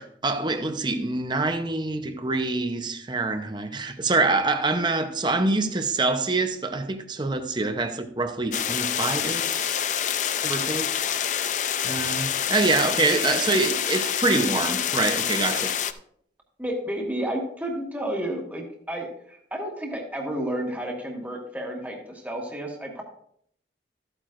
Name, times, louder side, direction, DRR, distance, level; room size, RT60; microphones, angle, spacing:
voice 1, 0.0-9.8 10.4-10.9 11.8-15.7, right 3 dB, 25° right, 0.7 m, -25 dB
sound 1, 8.5-15.9, left 9 dB, 45° left, 0.4 m, -27 dB
voice 2, 16.6-23.0, right 1 dB, 10° right, 1.5 m, -31 dB
13.5 x 8.9 x 2.5 m
head